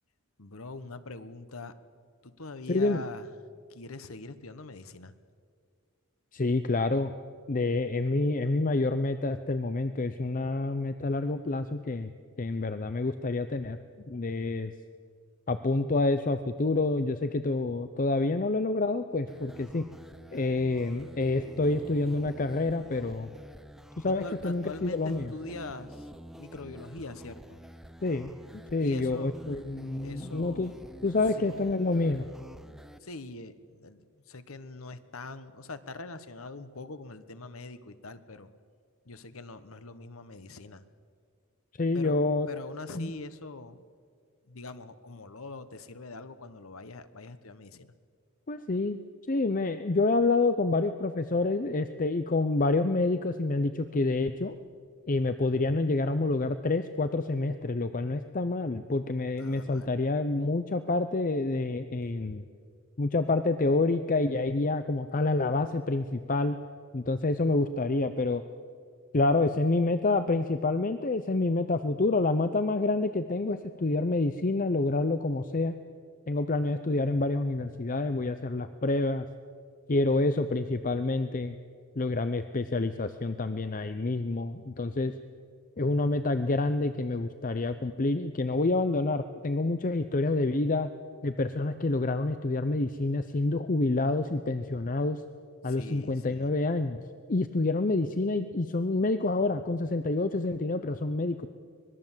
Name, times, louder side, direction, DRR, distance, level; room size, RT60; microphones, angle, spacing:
voice 1, 0.4-1.7 2.2-3.3 3.7-5.1 24.0-26.1 26.3-27.6 28.8-29.3 30.0-31.0 31.4-31.7 33.0-34.0 34.3-38.5 39.0-40.8 41.9-42.2 42.5-43.8 44.5-47.9 58.9-59.1 59.3-59.9 95.6-96.5, left 3 dB, 90° left, 12 dB, 1.2 m, -43 dB
voice 2, 2.7-3.0 6.3-7.1 7.5-12.1 12.4-13.8 14.1-14.7 15.5-19.8 20.3-23.3 24.0-25.3 28.0-28.3 28.7-30.7 31.0-32.3 41.8-42.5 43.0-43.1 48.5-49.0 49.3-54.6 55.1-62.4 63.0-66.6 66.9-68.4 69.1-75.8 76.3-79.3 79.9-81.6 82.0-85.1 85.8-90.9 91.2-95.2 95.6-97.0 97.3-101.5, left 2 dB, 40° left, 10 dB, 0.7 m, -28 dB
sound 1, 19.3-33.0, equal, ahead, 0.6 m, -48 dB
25.0 x 20.5 x 7.4 m, 2.1 s
head